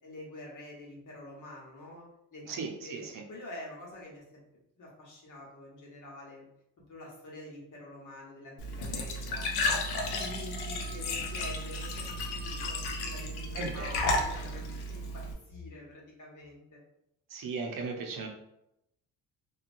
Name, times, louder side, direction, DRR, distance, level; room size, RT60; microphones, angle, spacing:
voice 1, 0.0-2.6 2.8-4.4 4.8-6.5 6.8-9.5 10.0-16.8, left 1 dB, 50° left, -3 dB, 1.2 m, -47 dB
voice 2, 2.5-3.2 13.5-14.1 17.3-18.3, right 4 dB, 60° right, 2 dB, 0.7 m, -37 dB
Glass / Trickle dribble / Fill (with liquid), 8.6-15.3, left 2 dB, 75° left, 0.7 m, -33 dB
2.9 x 2.3 x 2.6 m, 0.82 s
cardioid pair, 80°, 39 cm